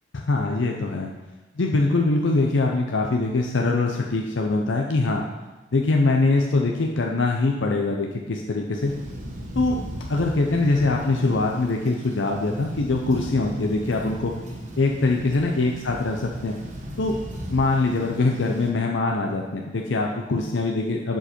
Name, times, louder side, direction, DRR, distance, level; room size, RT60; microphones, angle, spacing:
voice 1, 0.1-1.1 1.6-5.2 5.7-8.9 9.6-9.8 10.1-14.3 14.7-16.6 17.0-17.2 17.5-21.2, left 3 dB, 70° left, 1 dB, 0.6 m, -23 dB
Thunder, 8.8-18.7, right 1 dB, 40° right, 1.1 m, -36 dB
11.5 x 4.7 x 4.4 m, 1.2 s
head